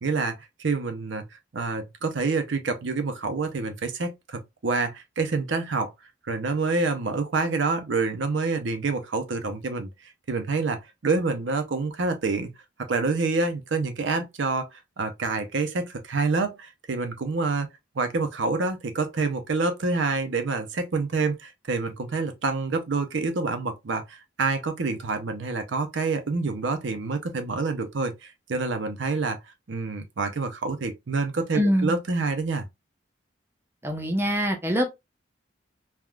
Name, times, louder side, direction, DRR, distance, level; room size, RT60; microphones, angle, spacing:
voice 1, 0.0-1.2 1.5-5.9 6.3-9.9 10.3-12.5 12.8-17.7 17.9-29.4 29.7-32.7, right 3 dB, 80° right, 0.6 m, -27 dB
voice 2, 31.5-31.9 33.8-34.9, equal, 10° right, 0.6 m, -24 dB
3.5 x 2.3 x 2.2 m
head